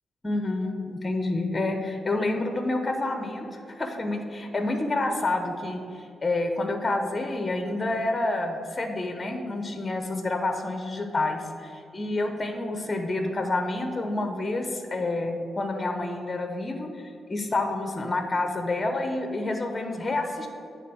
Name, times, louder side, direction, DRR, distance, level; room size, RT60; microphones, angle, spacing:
voice 1, 0.2-20.5, left 2 dB, 30° left, 5 dB, 0.8 m, -28 dB
9.2 x 3.4 x 6.1 m, 2.5 s
cardioid pair, 65°, 0 cm